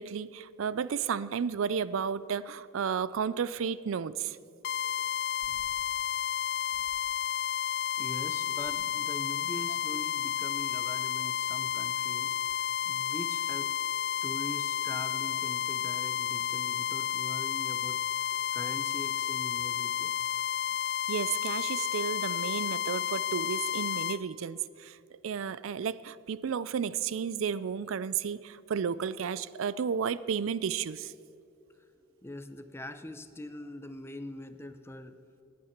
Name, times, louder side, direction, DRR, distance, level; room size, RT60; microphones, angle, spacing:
voice 1, 0.0-4.4 21.1-31.1, right 7 dB, 75° right, 18 dB, 0.4 m, -33 dB
sound 1, 4.6-24.2, left 9 dB, 50° left, 0.4 m, -32 dB
sound 2, 5.4-6.0 6.7-7.2 8.6-9.3 10.5-11.0 12.4-12.9 15.3-15.4, left 1 dB, 90° left, 2.0 m, -59 dB
voice 2, 8.0-13.7 14.2-18.1 18.5-20.4 31.8-31.9 32.2-35.2, left 1 dB, 10° left, 10 dB, 0.6 m, -43 dB
18.5 x 9.5 x 5.8 m, 2.6 s
head